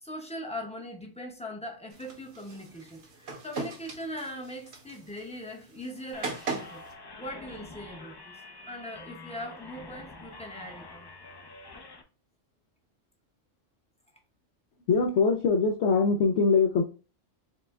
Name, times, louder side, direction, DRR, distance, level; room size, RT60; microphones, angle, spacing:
voice 1, 0.0-6.8 7.2-8.3 8.7-11.1, equal, 5° left, 0.6 m, -40 dB
sound 1, 1.9-6.9, right 4 dB, 60° right, 1.1 m, -40 dB
sound 2, 6.1-12.0, left 3 dB, 40° left, 0.3 m, -47 dB
voice 2, 14.9-16.8, left 4 dB, 70° left, 0.8 m, -23 dB
4.9 x 2.2 x 3.5 m
omnidirectional pair, 1.3 m